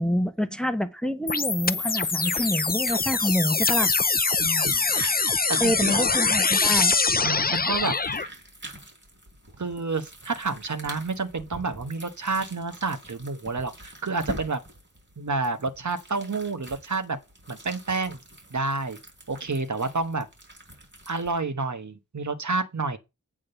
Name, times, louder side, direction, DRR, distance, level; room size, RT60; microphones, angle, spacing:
voice 1, 0.0-3.9 5.2-5.3 5.6-7.2, equal, ahead, 0.9 m, -27 dB
sound 1, 1.3-8.3, left 4 dB, 30° left, 0.6 m, -24 dB
sound 2, 1.4-21.4, right 1 dB, 35° right, 3.8 m, -45 dB
voice 2, 4.4-4.8 5.5-6.0 7.2-7.9 9.6-14.6 15.2-17.2 17.5-18.2 18.5-19.0 19.3-20.3 21.1-23.0, right 3 dB, 60° right, 1.2 m, -29 dB
8.6 x 3.7 x 6.7 m
wide cardioid pair, 60°, 34 cm